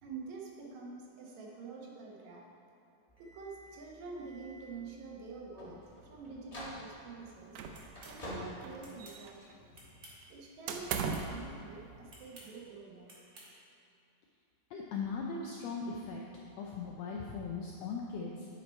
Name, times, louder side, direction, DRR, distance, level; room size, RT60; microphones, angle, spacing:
voice 1, 0.0-2.5 3.2-7.6 8.1-9.7 10.3-13.1, right 4 dB, 70° right, -2 dB, 2.2 m, -47 dB
sound 1, 3.1-9.6, equal, 45° left, 0.4 m, -49 dB
sound 2, 7.5-8.3 8.6-9.5 10.7-11.4, right 6 dB, 85° right, 1.4 m, -38 dB
sound 3, 7.7-8.2 8.8-9.2 9.7-10.3 10.9-11.3 12.1-12.5 13.1-13.5, right 1 dB, 50° right, 0.9 m, -54 dB
voice 2, 14.7-16.2 16.6-18.5, left 4 dB, 80° left, -2 dB, 1.5 m, -39 dB
9.9 x 5.8 x 4.3 m, 2.7 s
omnidirectional pair, 3.6 m